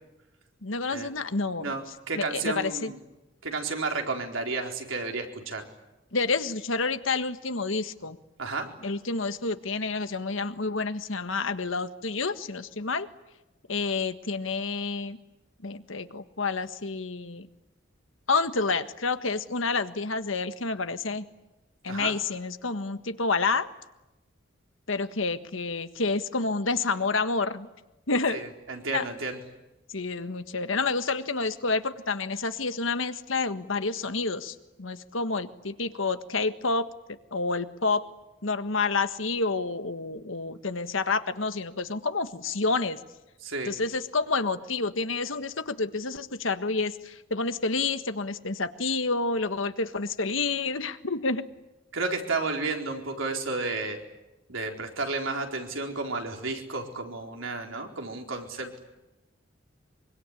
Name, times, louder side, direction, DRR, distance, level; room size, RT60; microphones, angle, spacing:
voice 1, 0.6-1.8 2.1-2.9 6.1-8.2 8.8-13.1 13.7-15.2 15.6-17.5 18.3-21.3 21.8-23.7 24.9-27.7 28.1-28.4 28.9-29.1 29.9-36.9 37.3-38.0 38.4-43.0 43.7-51.4, left 3 dB, 80° left, 10 dB, 1.6 m, -29 dB
voice 2, 1.6-3.0 3.4-5.6 8.4-8.7 21.9-22.2 28.3-29.4 43.4-43.7 51.9-54.0 54.5-58.8, right 3 dB, 85° right, 2 dB, 4.3 m, -32 dB
24.5 x 24.5 x 9.9 m, 1.0 s
head